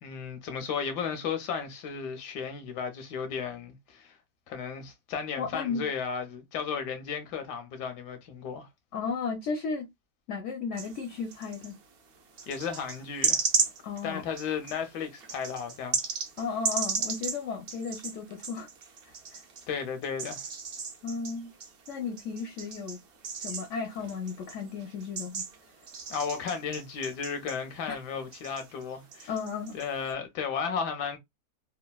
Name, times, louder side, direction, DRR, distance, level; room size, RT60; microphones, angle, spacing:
voice 1, 0.0-4.2 4.5-8.7 12.5-13.4 14.0-16.0 19.7-20.4 26.1-29.3 29.7-31.2, left 6 dB, 80° left, 1.2 m, -34 dB
voice 2, 5.4-5.9 8.9-9.9 10.3-11.7 13.8-14.2 16.4-18.7 19.3-19.4 21.0-21.5 21.9-23.0 23.3-25.4 27.9-28.0 29.3-29.8, left 5 dB, 65° left, 0.8 m, -34 dB
sound 1, 10.8-11.8 12.4-19.7 20.0-28.1 28.3-30.1, right 5 dB, 60° right, 0.6 m, -35 dB
3.2 x 2.2 x 2.2 m
omnidirectional pair, 1.8 m